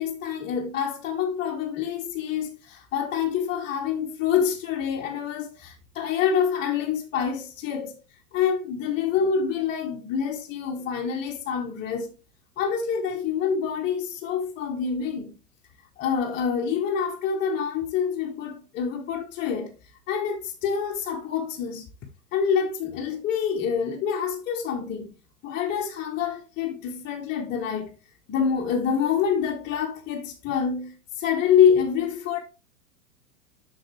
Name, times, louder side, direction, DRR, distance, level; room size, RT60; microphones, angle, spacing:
voice 1, 0.0-8.0 8.3-12.1 12.6-15.4 16.0-19.7 20.1-21.9 22.3-25.1 25.4-28.0 28.3-32.4, left 7 dB, 20° left, 1.0 m, -26 dB
11.5 x 3.9 x 3.1 m
figure-of-eight pair, 100°, 49 cm